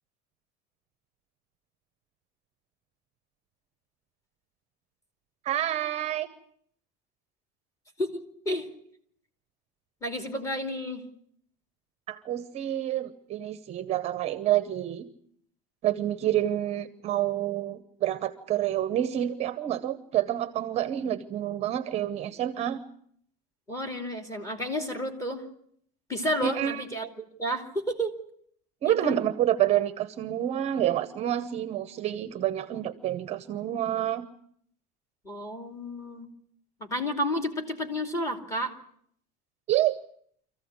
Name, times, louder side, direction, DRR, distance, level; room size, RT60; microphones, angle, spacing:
voice 1, 5.4-6.3 12.1-15.1 15.8-22.8 26.4-26.8 28.8-34.3 39.7-40.0, right 12 dB, 30° right, 11 dB, 0.9 m, -28 dB
voice 2, 8.0-8.7 10.0-11.0 23.7-25.5 26.1-28.1 28.8-29.2 35.2-36.3 36.8-38.7, equal, 15° left, 3 dB, 2.7 m, -31 dB
25.5 x 15.0 x 9.5 m, 0.67 s
cardioid pair, 165°, 21 cm